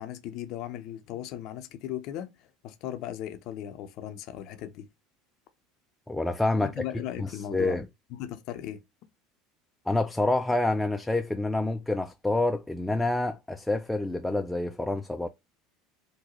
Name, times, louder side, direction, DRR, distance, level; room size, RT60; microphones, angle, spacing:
voice 1, 0.0-4.9 6.6-7.8 8.1-8.8, left 11 dB, 60° left, 0.5 m, -37 dB
voice 2, 6.1-6.8 7.2-7.9 9.9-15.3, left 2 dB, 10° left, 0.4 m, -27 dB
3.9 x 2.2 x 2.9 m
hypercardioid pair, 80°, 0 cm